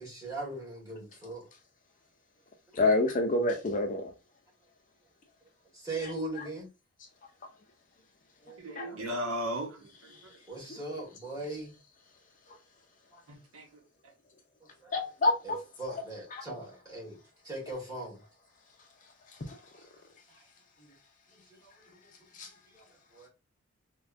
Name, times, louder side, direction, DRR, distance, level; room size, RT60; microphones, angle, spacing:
voice 1, 0.0-1.5 2.7-2.8 5.7-6.7 8.4-9.1 10.5-11.8 13.1-13.2 14.8-15.0 15.4-18.2 20.3-20.4 20.8-20.9 21.5-22.0 22.3-23.3, right 2 dB, 15° right, 1.6 m, -40 dB
voice 2, 2.7-4.1 8.8-9.1 14.9-15.6 19.5-19.6 22.4-22.5, left 2 dB, 35° left, 0.5 m, -27 dB
voice 3, 8.6-10.1 13.3-13.8, equal, 75° right, 0.9 m, -36 dB
3.3 x 2.2 x 2.5 m
head